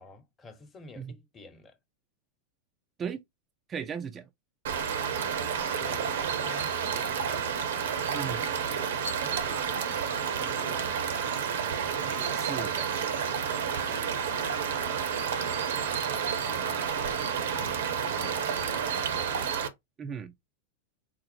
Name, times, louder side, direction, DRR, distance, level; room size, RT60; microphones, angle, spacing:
voice 1, 0.0-1.7 5.7-7.4 8.4-9.7 10.4-11.2 11.9-12.4 13.8-14.2 16.9-19.4, left 4 dB, 25° left, 1.1 m, -51 dB
voice 2, 3.7-4.2 8.1-8.4 12.3-12.9 20.0-20.3, right 7 dB, 25° right, 0.5 m, -36 dB
sound 1, 4.7-19.7, right 7 dB, 60° right, 0.8 m, -30 dB
4.4 x 2.0 x 4.5 m
figure-of-eight pair, 90°, 0 cm